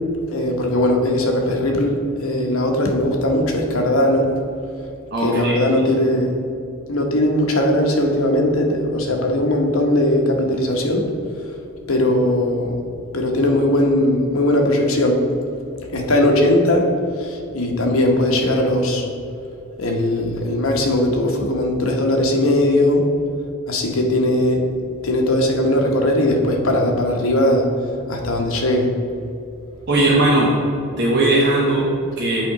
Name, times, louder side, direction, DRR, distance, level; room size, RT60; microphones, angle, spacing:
voice 1, 0.3-4.3 5.2-6.3 6.9-11.1 11.9-12.7 13.1-15.2 15.9-16.9 17.5-19.0 19.8-23.0 23.7-24.6 25.0-27.7 28.1-28.9, left 1 dB, 80° left, 2 dB, 0.9 m, -19 dB
voice 2, 5.1-5.6 6.0-6.1 29.9-30.5 31.0-32.5, right 2 dB, 55° right, -5 dB, 0.9 m, -18 dB
8.4 x 3.6 x 4.7 m, 2.6 s
head